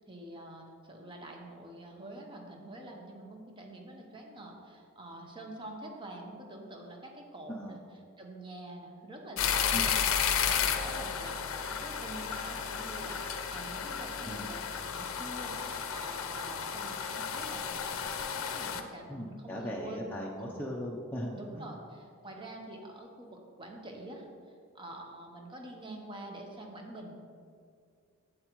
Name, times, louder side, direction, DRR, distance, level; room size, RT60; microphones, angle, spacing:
voice 1, 0.0-7.8 8.2-14.6 14.9-20.0 20.4-20.6 21.3-24.3 24.7-27.2, right 1 dB, 25° right, 1 dB, 0.9 m, -46 dB
sound 1, 9.4-18.8, left 7 dB, 75° left, 0.6 m, -33 dB
voice 2, 19.1-21.7, equal, 10° left, -4 dB, 0.5 m, -38 dB
7.9 x 7.8 x 3.0 m, 2.3 s
head